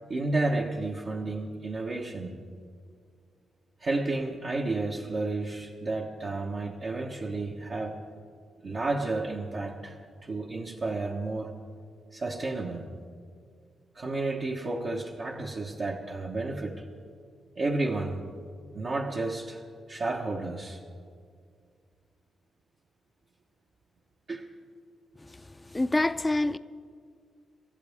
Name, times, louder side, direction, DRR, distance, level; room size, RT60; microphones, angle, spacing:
voice 1, 0.1-2.4 3.8-8.0 8.6-11.5 12.1-12.9 13.9-16.9 17.6-18.3 18.7-19.6 19.9-20.8 24.3-24.4, right 2 dB, 50° right, 1.2 m, -31 dB
voice 2, 25.2-26.6, left 2 dB, 15° left, 0.6 m, -28 dB
26.5 x 14.5 x 3.6 m
cardioid pair, 75°, 0 cm